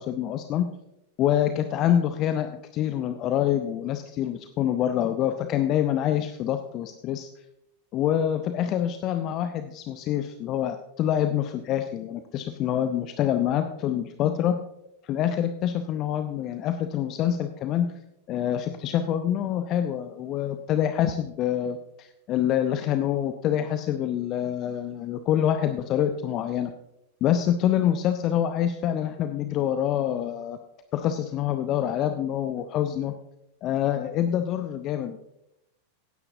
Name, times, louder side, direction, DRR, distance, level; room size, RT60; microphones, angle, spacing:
voice 1, 0.1-0.7 1.2-7.3 7.9-14.6 15.0-17.9 18.3-26.7 27.2-30.6 30.9-33.1 33.6-35.2, left 10 dB, 35° left, 8 dB, 0.6 m, -26 dB
16.5 x 9.8 x 2.7 m, 0.83 s
figure-of-eight pair, 90°, 0 cm